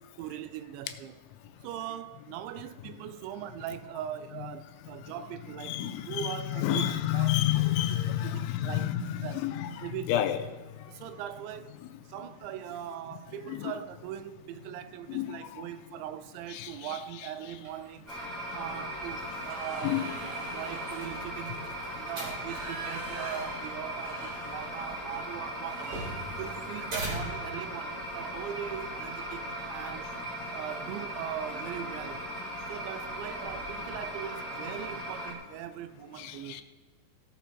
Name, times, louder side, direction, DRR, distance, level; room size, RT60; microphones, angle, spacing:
voice 1, 0.2-1.1 1.6-7.7 8.1-8.9 9.2-9.5 9.8-10.3 10.9-11.8 12.1-18.2 18.5-20.0 20.5-26.1 26.4-30.1 30.5-32.3 32.7-36.6, right 11 dB, 85° right, 2.7 m, -40 dB
voice 2, 5.6-10.4 13.5-13.7 15.1-15.3 16.5-17.0 19.8-20.1 36.2-36.6, left 12 dB, 85° left, 3.1 m, -30 dB
sound 1, 17.6-18.0 18.4-18.6 18.9-25.0 25.3-25.4 25.8-27.9 29.3-29.5 29.9-30.1 30.4-31.0, right 3 dB, 65° right, 3.7 m, -45 dB
sound 2, 18.1-35.3, equal, ahead, 3.5 m, -38 dB
sound 3, 20.6-27.6, right 1 dB, 40° right, 4.0 m, -44 dB
17.0 x 7.0 x 4.5 m
omnidirectional pair, 5.4 m